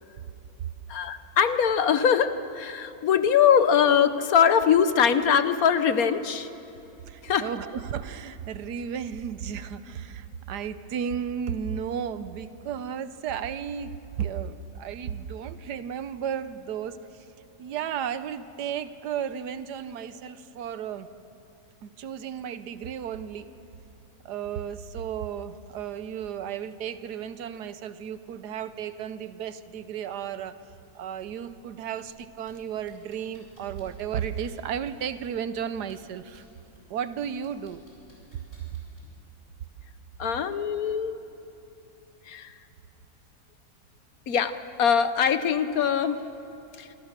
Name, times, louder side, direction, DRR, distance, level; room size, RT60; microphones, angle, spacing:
voice 1, 0.9-6.5 7.2-7.5 40.2-41.2 42.3-42.5 44.3-46.2 46.8-46.9, left 7 dB, 65° left, 11 dB, 1.3 m, -22 dB
voice 2, 7.1-17.2 17.6-21.1 21.8-23.5 24.2-30.5 30.9-36.4 36.9-37.8, right 8 dB, 80° right, 12 dB, 1.4 m, -34 dB
sound 1, 32.0-32.5 32.9-35.3 35.8-36.4 36.7-39.2 40.2-40.3, left 1 dB, 35° left, 7.1 m, -57 dB
26.0 x 25.5 x 6.7 m, 2.9 s
omnidirectional pair, 1.7 m